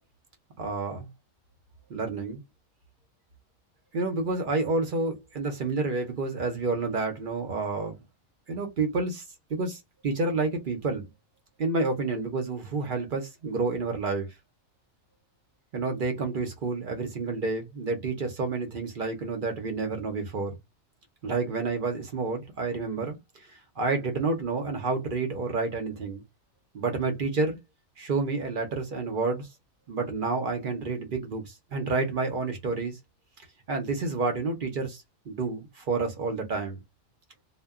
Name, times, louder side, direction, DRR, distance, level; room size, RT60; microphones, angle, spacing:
voice 1, 0.6-1.1 1.9-2.4 3.9-8.0 8.5-9.2 9.5-11.0 11.6-14.3 15.7-20.5 21.2-23.5 23.8-26.2 26.7-27.6 28.0-29.5 29.9-33.0 33.7-36.8, right 3 dB, 50° right, 0.6 m, -29 dB
2.1 x 2.1 x 3.5 m
omnidirectional pair, 1.4 m